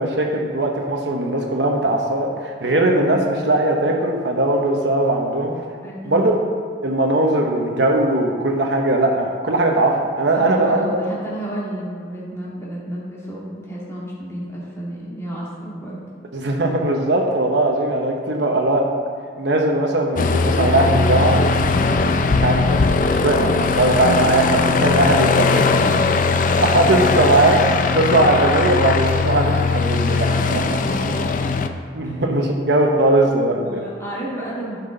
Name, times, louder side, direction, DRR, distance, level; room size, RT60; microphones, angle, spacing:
voice 1, 0.0-5.7 6.1-6.4 6.8-10.9 16.3-18.8 19.4-21.4 22.0-22.6 23.1-25.5 26.6-30.6 31.9-33.8, right 2 dB, 65° right, 1 dB, 1.0 m, -19 dB
voice 2, 5.8-6.3 10.3-16.1 25.2-26.2 30.2-31.3 32.0-32.2 33.6-34.8, right 1 dB, 15° left, -7 dB, 2.4 m, -31 dB
Aircraft, 20.2-31.7, left 4 dB, 45° left, 0.5 m, -19 dB
13.0 x 5.9 x 3.9 m, 2.2 s
head